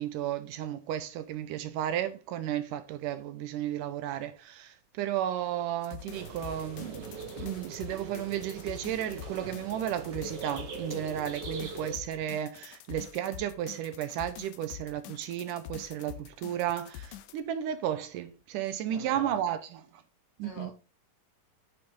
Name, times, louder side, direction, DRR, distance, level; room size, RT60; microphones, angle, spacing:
voice 1, 0.0-19.6 19.9-20.0 20.4-20.7, right 11 dB, 75° right, 2.2 m, -33 dB
sound 1, 5.8-17.4, left 12 dB, 75° left, 2.1 m, -46 dB
sound 2, 6.1-12.0, right 4 dB, 45° right, 1.5 m, -42 dB
voice 2, 18.9-19.5 20.4-20.7, left 2 dB, 60° left, 1.4 m, -44 dB
9.0 x 5.8 x 3.8 m
omnidirectional pair, 4.0 m